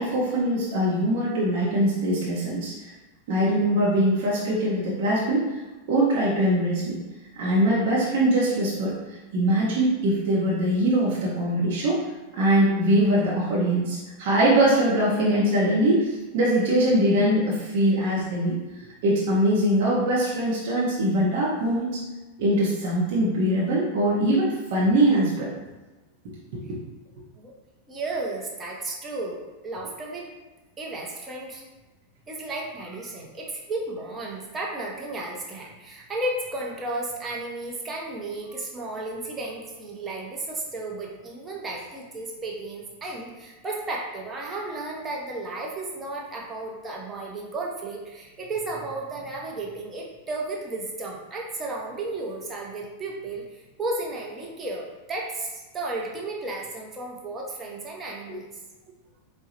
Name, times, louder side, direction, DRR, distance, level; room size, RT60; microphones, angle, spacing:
voice 1, 0.0-2.9 3.3-5.6 5.9-7.0 7.4-8.9 9.3-12.0 12.3-18.6 19.0-22.0 22.4-25.5 26.7-26.8, right 1 dB, 50° right, -6 dB, 0.8 m, -22 dB
voice 2, 27.9-30.3 30.8-31.6 32.3-58.5, right 2 dB, 20° right, -2 dB, 0.8 m, -33 dB
4.6 x 2.2 x 2.9 m, 1.1 s
figure-of-eight pair, 90°, 0 cm